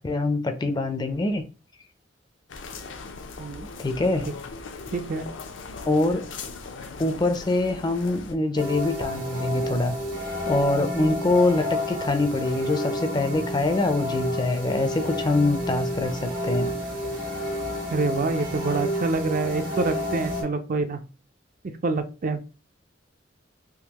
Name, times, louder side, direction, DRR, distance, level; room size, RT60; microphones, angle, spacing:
voice 1, 0.0-1.4 3.8-4.3 5.9-6.2 7.0-10.0 10.5-16.7, left 2 dB, 20° left, 0.4 m, -24 dB
sound 1, 2.5-8.3, left 4 dB, 75° left, 0.6 m, -39 dB
voice 2, 4.9-5.3 17.9-21.0 21.8-22.4, right 3 dB, 45° right, 0.4 m, -26 dB
sound 2, 8.6-20.4, left 1 dB, 85° right, 1.5 m, -30 dB
3.7 x 2.7 x 2.9 m
head